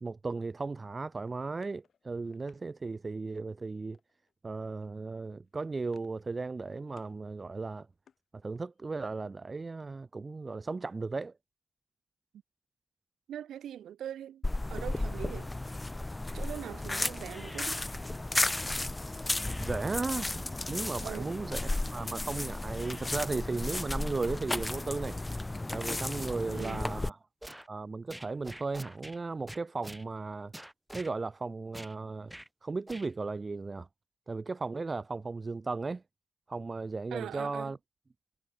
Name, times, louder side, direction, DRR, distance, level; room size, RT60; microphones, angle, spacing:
voice 1, 0.0-4.0 4.4-7.9 8.4-11.3 19.6-25.2 25.7-27.2 27.7-30.5 30.9-32.3 32.6-33.9 34.3-36.0 36.5-37.8, right 3 dB, 35° right, 0.9 m, -36 dB
sound 1, 1.2-2.6 3.9-4.3 4.6-4.9 5.2-6.3 6.5-7.2 7.6-8.8, left 7 dB, 65° left, 3.3 m, -65 dB
voice 2, 13.3-14.4 14.7-15.5 16.3-17.8 21.0-21.3 26.5-26.9 37.1-37.7, right 10 dB, 75° right, 1.7 m, -41 dB
sound 2, 14.4-27.1, left 2 dB, 20° left, 0.9 m, -34 dB
sound 3, 26.6-26.8 27.4-27.7 28.1-29.2 29.5-30.0 30.5-31.1 31.7-31.9 32.3-32.5 32.9-33.1, right 1 dB, 10° right, 2.2 m, -45 dB
supercardioid pair, 50°, 0 cm